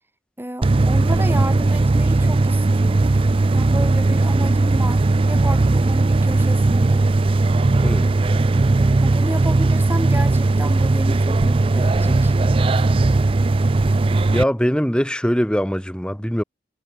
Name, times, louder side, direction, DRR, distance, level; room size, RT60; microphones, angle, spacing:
voice 1, 0.4-3.2 3.5-7.1 9.0-12.3, right 1 dB, 10° right, 3.7 m, -31 dB
sound 1, 0.6-14.4, right 2 dB, 30° right, 0.4 m, -17 dB
voice 2, 7.8-8.1 14.3-16.4, equal, 5° left, 2.2 m, -21 dB
head